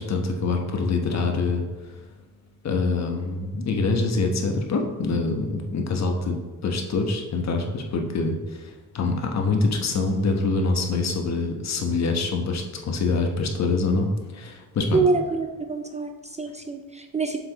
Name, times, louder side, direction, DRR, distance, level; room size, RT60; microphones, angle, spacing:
voice 1, 0.0-2.0 2.6-6.4 6.6-15.0, left 3 dB, 55° left, 3 dB, 1.1 m, -25 dB
voice 2, 14.9-17.4, right 4 dB, 20° right, 5 dB, 0.4 m, -26 dB
7.3 x 7.1 x 3.0 m, 1.4 s
wide cardioid pair, 150°, 33 cm